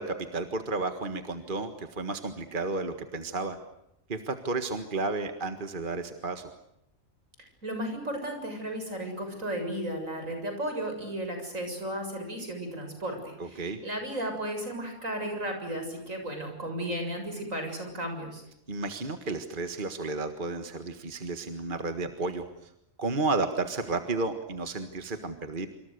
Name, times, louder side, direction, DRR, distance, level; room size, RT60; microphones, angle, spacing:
voice 1, 0.0-3.6 4.1-6.5 13.4-13.8 18.7-22.5 23.0-25.7, right 3 dB, 40° right, 7 dB, 1.9 m, -32 dB
voice 2, 7.6-18.4, right 1 dB, 75° right, 5 dB, 7.5 m, -34 dB
27.0 x 26.5 x 6.7 m, 0.81 s
omnidirectional pair, 1.4 m